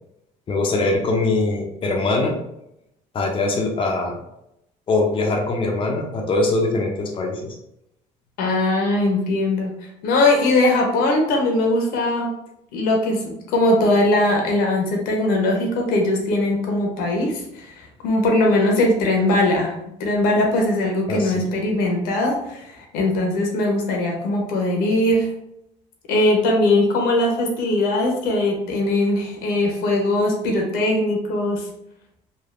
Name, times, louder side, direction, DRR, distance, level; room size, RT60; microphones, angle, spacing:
voice 1, 0.5-2.4 3.1-4.2 4.9-7.5 21.1-21.4, left 2 dB, 35° left, 0 dB, 0.6 m, -22 dB
voice 2, 8.4-9.8 10.0-12.3 12.7-19.7 20.0-25.3 26.1-31.7, left 1 dB, 85° left, 1 dB, 0.8 m, -20 dB
3.3 x 2.4 x 2.4 m, 0.81 s
cardioid pair, 100°, 15 cm